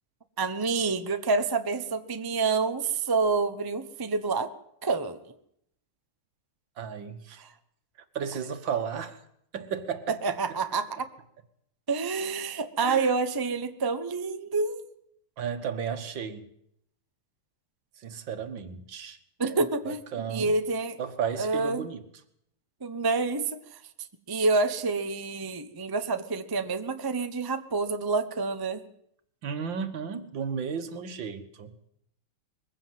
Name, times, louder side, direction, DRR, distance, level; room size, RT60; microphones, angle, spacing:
voice 1, 0.4-4.5 4.8-5.2 7.4-7.5 10.2-11.1 11.9-14.8 19.4-20.0 20.3-21.0 21.4-21.9 22.8-23.8 24.3-28.8, right 4 dB, 30° right, 0.4 m, -28 dB
voice 2, 6.8-7.4 8.2-9.2 9.5-10.4 12.8-13.1 15.4-16.4 18.0-19.2 19.9-20.5 21.0-22.0 29.4-31.7, right 7 dB, 60° right, 2.1 m, -34 dB
21.5 x 16.0 x 7.7 m
omnidirectional pair, 2.4 m